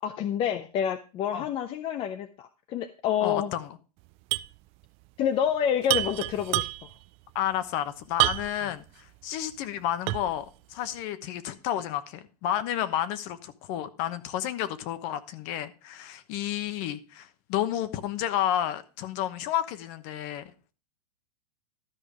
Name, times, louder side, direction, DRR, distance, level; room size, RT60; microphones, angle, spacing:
voice 1, 0.0-3.5 5.2-6.7, left 9 dB, 25° left, 0.6 m, -28 dB
voice 2, 3.2-3.8 7.3-20.7, left 11 dB, 40° left, 1.0 m, -31 dB
sound 1, 4.3-4.6 4.8-4.9 5.8-7.0 8.2-8.7 9.2-9.3 10.1-10.4, right 20 dB, 30° right, 0.4 m, -27 dB
13.0 x 5.1 x 4.9 m
hypercardioid pair, 135°, 20 cm